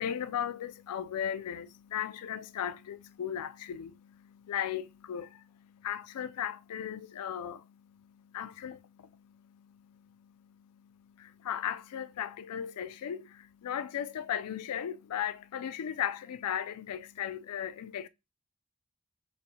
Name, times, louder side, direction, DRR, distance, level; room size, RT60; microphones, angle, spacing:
voice 1, 0.0-18.1, left 9 dB, 85° left, 0.3 m, -37 dB
5.0 x 2.5 x 2.7 m
head